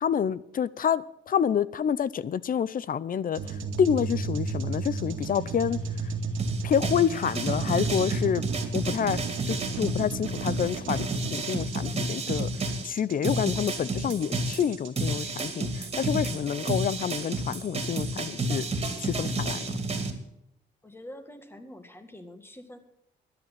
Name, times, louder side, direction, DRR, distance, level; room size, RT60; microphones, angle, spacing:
voice 1, 0.0-5.8 6.6-8.4 8.7-9.2 9.5-18.7 19.0-19.7, left 8 dB, 45° left, 0.6 m, -28 dB
sound 1, 3.3-15.3, right 3 dB, 85° right, 2.2 m, -34 dB
sound 2, 6.4-12.9 13.2-20.1, right 2 dB, 30° right, 2.6 m, -31 dB
voice 2, 20.8-22.8, left 1 dB, 10° left, 2.1 m, -45 dB
12.5 x 9.9 x 7.5 m
cardioid pair, 90°, 20 cm